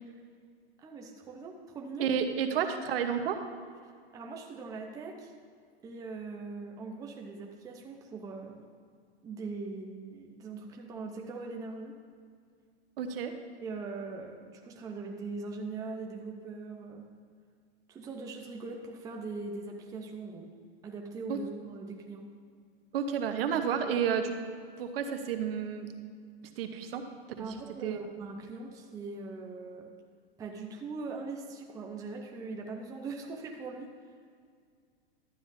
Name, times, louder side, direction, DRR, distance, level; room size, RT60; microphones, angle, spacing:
voice 1, 0.8-2.1 4.1-5.3 5.8-8.7 9.2-12.0 13.6-17.1 17.9-20.5 20.8-22.3 27.4-29.9 30.4-33.9, right 3 dB, 10° right, 1 dB, 0.6 m, -41 dB
voice 2, 2.0-3.4 13.0-13.3 21.3-21.4 22.9-24.3 24.8-25.9 26.6-27.1 27.4-27.6 27.8-28.0, right 7 dB, 65° right, 6 dB, 1.0 m, -31 dB
12.0 x 9.5 x 2.7 m, 2.1 s
hypercardioid pair, 145°, 31 cm